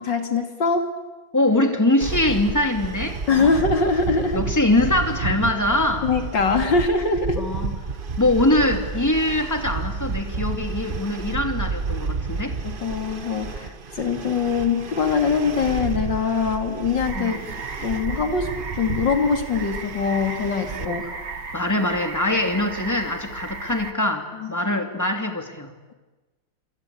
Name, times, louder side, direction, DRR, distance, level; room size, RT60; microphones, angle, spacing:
voice 1, 0.1-0.9 3.3-4.4 6.0-7.4 12.6-17.4 17.8-18.5 18.8-21.0 24.4-24.5, left 5 dB, 55° left, 5 dB, 3.3 m, -23 dB
voice 2, 1.3-3.5 4.3-6.1 7.4-7.7 8.2-12.6 17.1-17.5 20.8-21.0 21.5-25.7, left 1 dB, 10° left, 5 dB, 2.6 m, -23 dB
sound 1, 2.0-20.8, right 5 dB, 40° right, 0.8 m, -31 dB
sound 2, 17.0-23.9, right 4 dB, 55° right, 2.6 m, -35 dB
27.5 x 26.0 x 8.5 m, 1.2 s
omnidirectional pair, 2.3 m